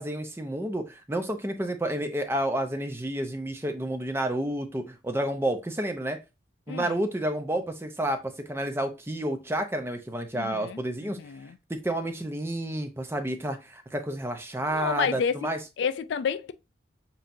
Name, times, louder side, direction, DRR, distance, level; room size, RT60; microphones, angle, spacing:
voice 1, 0.0-6.2 6.7-11.2 11.7-15.6, right 1 dB, 10° right, 0.6 m, -30 dB
voice 2, 6.7-7.0 10.3-11.6 14.7-15.3 15.8-16.5, left 6 dB, 70° left, 0.3 m, -30 dB
7.2 x 2.8 x 2.6 m
head